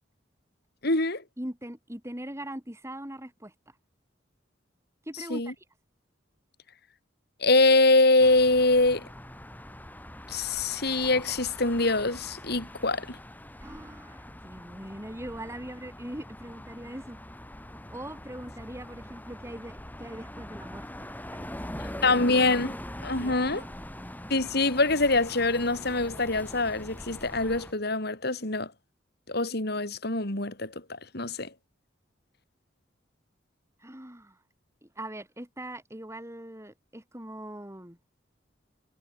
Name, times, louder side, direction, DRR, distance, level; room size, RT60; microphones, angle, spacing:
voice 1, 0.8-1.2 5.3-5.5 7.4-9.0 10.3-13.2 22.0-22.7 23.0-23.6 24.3-28.7 29.3-31.5, left 2 dB, 60° left, 5.0 m, -24 dB
voice 2, 1.4-3.5 5.1-5.5 13.6-17.2 17.9-22.3 23.2-23.7 33.8-34.4 34.8-38.0, right 1 dB, 15° right, 6.3 m, -41 dB
sound 1, 8.2-27.7, left 1 dB, 10° left, 5.4 m, -43 dB
head